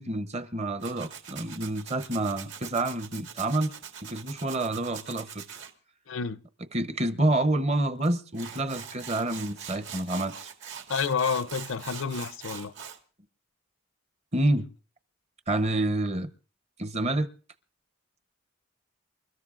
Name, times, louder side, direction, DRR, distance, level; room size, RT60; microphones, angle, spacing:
voice 1, 0.0-3.7 4.0-5.4 6.7-10.5 14.3-14.7 15.5-16.3 16.8-17.3, right 1 dB, 30° right, 0.8 m, -28 dB
Tools, 0.8-5.7 8.0-8.1 8.3-13.0, right 7 dB, 65° right, 1.8 m, -42 dB
voice 2, 6.1-6.4 10.9-12.7, left 6 dB, 75° left, 0.6 m, -29 dB
28.5 x 13.5 x 2.5 m
head